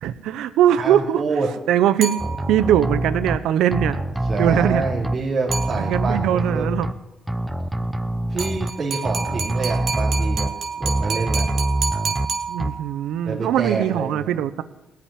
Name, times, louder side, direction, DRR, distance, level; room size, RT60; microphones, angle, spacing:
voice 1, 0.0-1.2 1.7-2.2 2.5-4.0 4.3-4.8 5.8-6.9 12.5-14.6, right 11 dB, 85° right, 13 dB, 0.7 m, -21 dB
voice 2, 0.8-1.5 4.2-6.7 8.3-10.5 10.8-11.5 13.2-14.3, right 4 dB, 40° right, -5 dB, 3.2 m, -27 dB
sound 1, 2.0-2.8 5.5-6.3 8.4-13.1, right 5 dB, 60° right, 2.5 m, -29 dB
sound 2, 2.2-3.4 3.7-5.1 5.5-6.9 7.3-8.7 9.1-10.5 10.8-12.3 12.6-12.7, right 1 dB, 10° right, 0.8 m, -25 dB
17.5 x 5.9 x 9.9 m, 0.92 s
cardioid pair, 90°, 0 cm